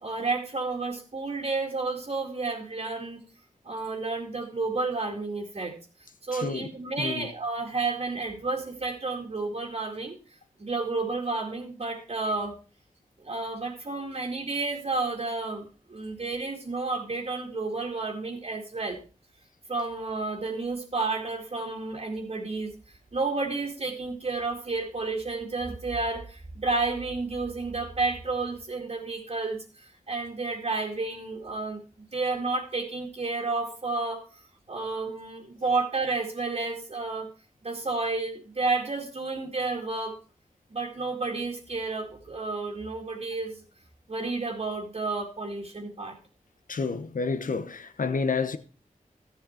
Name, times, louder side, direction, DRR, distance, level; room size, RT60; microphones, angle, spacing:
voice 1, 0.0-3.2 3.6-5.7 6.2-10.2 10.6-12.5 13.2-19.0 19.7-22.7 23.1-34.2 34.7-37.3 37.6-40.2 40.7-43.6 44.1-46.2, right 3 dB, 50° right, 2.1 m, -31 dB
voice 2, 6.3-6.7 7.0-7.3 46.7-48.6, left 4 dB, 75° left, 1.0 m, -29 dB
13.5 x 8.1 x 4.4 m
wide cardioid pair, 95°, 14 cm